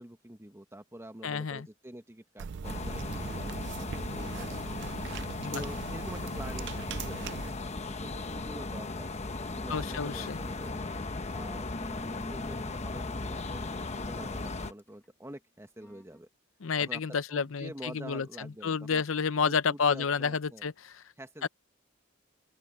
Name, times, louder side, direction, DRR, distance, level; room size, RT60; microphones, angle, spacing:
voice 1, 0.0-4.7 5.5-7.4 7.9-9.1 9.4-10.9 11.3-11.6 12.3-16.3 16.8-17.0 17.3-19.0 19.4-20.7 21.2-21.5, right 1 dB, 15° right, 1.5 m, -46 dB
voice 2, 1.2-1.7 5.4-5.6 9.7-10.4 16.6-21.0 21.4-21.5, left 5 dB, 80° left, 0.7 m, -30 dB
sound 1, 2.4-7.5, right 6 dB, 60° right, 0.4 m, -40 dB
sound 2, 2.6-14.7, left 3 dB, 35° left, 1.0 m, -37 dB
sound 3, 9.9-13.5 14.0-14.3 14.8-15.1 15.8-16.2, equal, 10° left, 1.4 m, -49 dB
open air
head